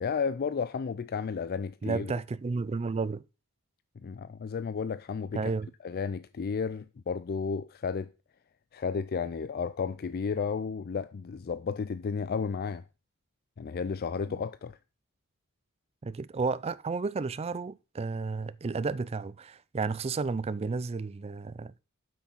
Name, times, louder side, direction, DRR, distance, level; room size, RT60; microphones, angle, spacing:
voice 1, 0.0-2.1 4.0-5.4 5.8-8.1 8.7-12.8 13.6-14.8, left 5 dB, 45° left, 0.4 m, -32 dB
voice 2, 1.8-3.2 5.3-5.7 14.3-14.4 16.0-21.7, right 4 dB, 25° right, 0.3 m, -32 dB
8.2 x 6.1 x 5.6 m
head